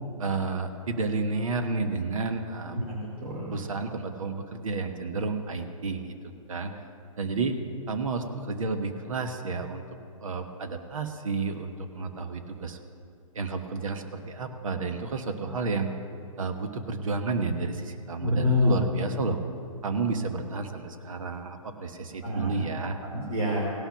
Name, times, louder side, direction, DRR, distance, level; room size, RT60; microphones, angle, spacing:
voice 1, 0.2-2.8 3.5-6.1 6.5-6.7 7.2-7.6 7.9-9.8 10.2-12.8 13.3-15.9 16.4-19.4 19.8-23.0, right 4 dB, 70° right, 7 dB, 1.2 m, -31 dB
voice 2, 2.7-3.4 18.2-18.7 22.2-22.5 23.1-23.6, left 2 dB, 90° right, -5 dB, 2.8 m, -26 dB
17.0 x 5.8 x 5.8 m, 2.5 s
hypercardioid pair, 135°, 18 cm